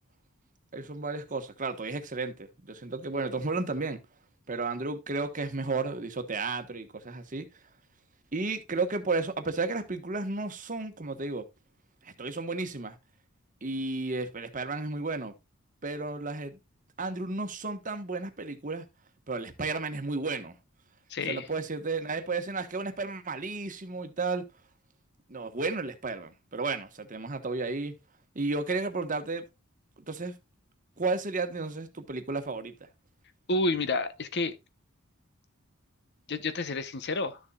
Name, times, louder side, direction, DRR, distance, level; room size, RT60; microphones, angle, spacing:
voice 1, 0.7-4.0 4.5-7.5 8.3-11.5 12.0-13.0 13.6-15.3 15.8-16.6 17.0-18.8 19.3-20.5 21.3-24.4 25.3-27.9 28.3-29.4 30.1-30.3 31.0-32.7, right 3 dB, 35° right, 1.2 m, -33 dB
voice 2, 21.1-21.5 33.5-34.6 36.3-37.4, left 2 dB, 50° left, 0.9 m, -29 dB
12.5 x 7.0 x 2.4 m
head